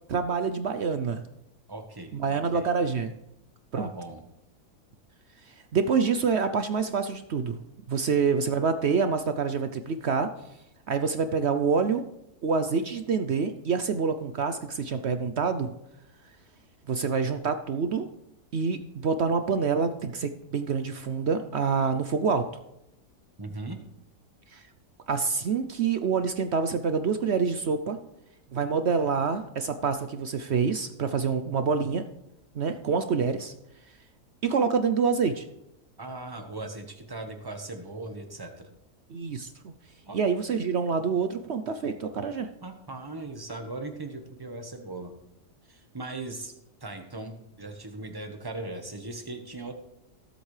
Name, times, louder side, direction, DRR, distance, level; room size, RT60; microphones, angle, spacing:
voice 1, 0.1-1.2 2.1-3.1 3.7-3.9 5.7-7.6 7.9-10.3 10.9-12.1 12.4-15.7 16.9-18.1 18.5-22.4 24.5-24.6 25.1-28.0 28.5-32.1 32.5-33.5 34.4-35.4 39.1-39.7 40.1-42.5, right 5 dB, 60° right, 9 dB, 0.7 m, -26 dB
voice 2, 1.7-2.7 3.7-4.2 23.4-23.8 36.0-38.7 40.1-40.2 42.6-45.1 45.7-46.5 46.8-49.7, right 2 dB, 15° right, 5 dB, 1.1 m, -39 dB
20.0 x 8.0 x 3.3 m, 0.85 s
omnidirectional pair, 1.7 m